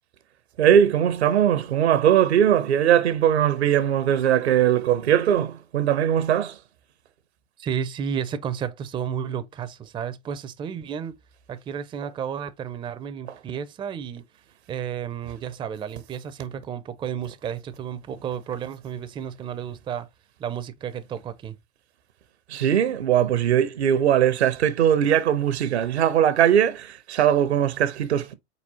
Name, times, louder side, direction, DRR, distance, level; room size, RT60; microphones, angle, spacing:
voice 1, 0.6-6.6 22.5-28.3, right 10 dB, 70° right, 0.8 m, -20 dB
voice 2, 7.6-11.2 11.5-14.2 14.7-20.1 20.4-21.6, right 8 dB, 15° right, 0.4 m, -32 dB
4.2 x 4.0 x 2.7 m
figure-of-eight pair, 90°, 33 cm